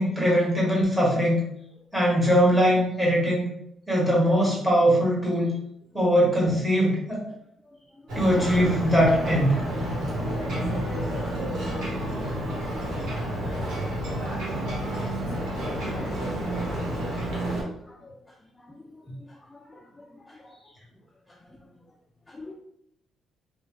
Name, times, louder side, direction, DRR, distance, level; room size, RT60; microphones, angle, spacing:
voice 1, 0.0-1.4 1.9-3.5 3.9-5.5 5.9-7.2 8.1-9.5, equal, 5° right, -5 dB, 1.3 m, -21 dB
Ocean, 8.1-17.6, right 1 dB, 80° right, 1.0 m, -29 dB
voice 2, 11.0-11.4 12.0-12.3 15.7-16.2 17.4-17.5 22.4-22.5, left 2 dB, 15° left, 1 dB, 0.3 m, -41 dB
2.9 x 2.2 x 3.0 m, 0.76 s
cardioid pair, 90°, 0 cm